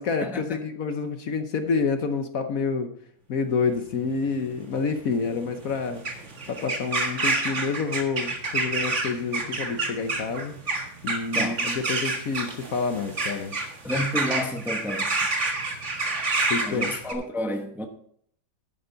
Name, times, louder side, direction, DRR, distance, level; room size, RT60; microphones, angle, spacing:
voice 1, 0.0-2.9 3.3-6.0 6.5-10.6 11.0-13.5 16.5-16.9, left 5 dB, 60° left, 1.2 m, -28 dB
sound 1, 3.7-17.1, right 3 dB, 45° right, 1.9 m, -28 dB
voice 2, 13.8-15.1 16.6-17.9, left 1 dB, ahead, 0.8 m, -30 dB
11.5 x 10.0 x 3.9 m
omnidirectional pair, 1.9 m